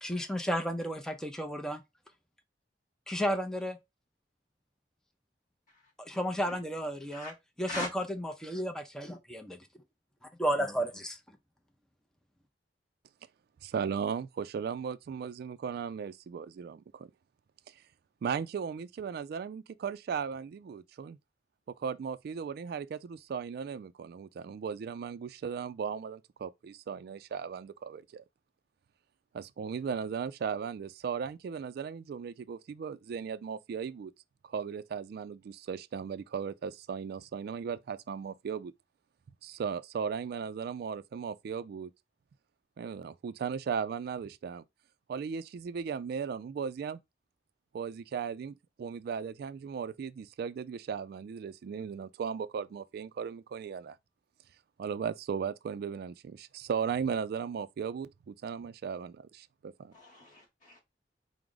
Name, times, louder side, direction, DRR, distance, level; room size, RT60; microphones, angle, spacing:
voice 1, 0.0-1.8 3.1-3.8 6.0-7.3 7.6-9.6 10.4-11.2, equal, 5° left, 0.5 m, -33 dB
voice 2, 13.6-17.1 18.2-21.2 21.8-28.2 29.3-34.1 34.4-38.7 39.4-41.9 42.8-44.6 45.1-47.0 47.7-54.0 54.8-59.9, right 6 dB, 60° right, 0.3 m, -37 dB
voice 3, 59.9-60.8, left 2 dB, 50° left, 1.0 m, -40 dB
4.7 x 2.0 x 3.7 m
head